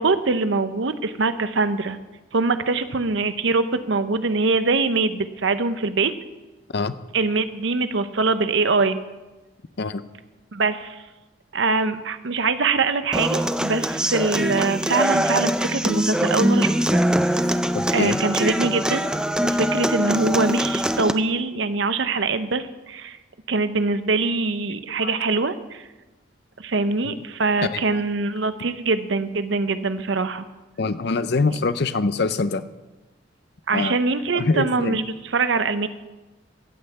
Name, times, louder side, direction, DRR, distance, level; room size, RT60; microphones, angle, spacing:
voice 1, 0.0-2.0 2.3-6.1 7.1-9.0 10.5-11.0 11.5-17.0 17.9-19.1 19.4-23.2 23.5-25.9 26.6-30.4 33.7-35.9, right 3 dB, 65° right, 11 dB, 0.7 m, -23 dB
Human voice / Acoustic guitar, 13.1-21.1, equal, 5° right, 0.4 m, -23 dB
voice 2, 17.7-18.2 25.0-25.1 27.0-27.2 27.6-28.0 30.8-32.7 33.7-34.0 34.3-35.0, left 3 dB, 55° left, 13 dB, 0.6 m, -24 dB
15.0 x 5.8 x 7.9 m, 1.1 s
head